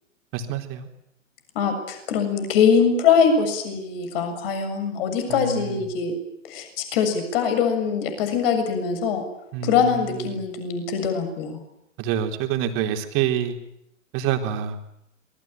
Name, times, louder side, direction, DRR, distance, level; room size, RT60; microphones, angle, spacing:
voice 1, 0.3-0.9 5.3-5.9 9.5-10.4 12.0-13.6 14.1-14.8, right 9 dB, 35° right, 4 dB, 3.9 m, -27 dB
voice 2, 1.6-6.2 6.5-9.2 9.6-11.6, left 6 dB, 45° left, 7 dB, 7.1 m, -22 dB
26.5 x 22.0 x 9.1 m, 0.80 s
figure-of-eight pair, 115°, 38 cm